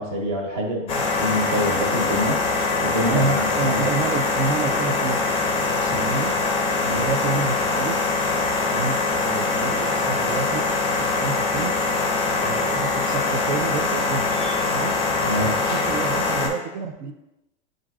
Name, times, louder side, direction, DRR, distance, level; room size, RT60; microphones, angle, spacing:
voice 1, 0.0-2.4 2.8-3.8 5.9-6.0 6.8-7.0 15.2-15.6, left 1 dB, 40° right, -1 dB, 1.2 m, -26 dB
sound 1, 0.9-16.5, left 3 dB, 15° left, 0.5 m, -23 dB
voice 2, 3.0-6.3 6.8-8.0 8.7-10.7 11.2-11.8 12.4-14.4 14.7-15.0 15.4-17.1, right 4 dB, 70° right, 6 dB, 0.6 m, -29 dB
7.4 x 2.6 x 2.4 m, 0.94 s
supercardioid pair, 140°, 35 cm